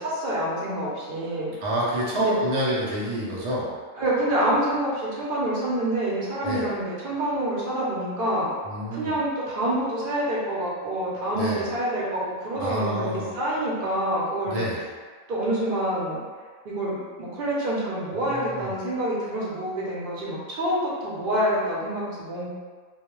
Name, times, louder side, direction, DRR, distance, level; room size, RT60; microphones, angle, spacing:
voice 1, 0.0-1.5 2.1-2.4 4.0-8.5 8.9-14.6 15.3-16.2 16.6-22.5, right 1 dB, 50° right, -6 dB, 0.7 m, -27 dB
voice 2, 1.6-3.7 6.4-6.7 8.6-9.2 11.3-11.7 12.6-13.3 14.5-14.8 18.2-18.7, equal, 75° right, -6 dB, 0.3 m, -28 dB
2.3 x 2.1 x 3.0 m, 1.5 s
omnidirectional pair, 1.4 m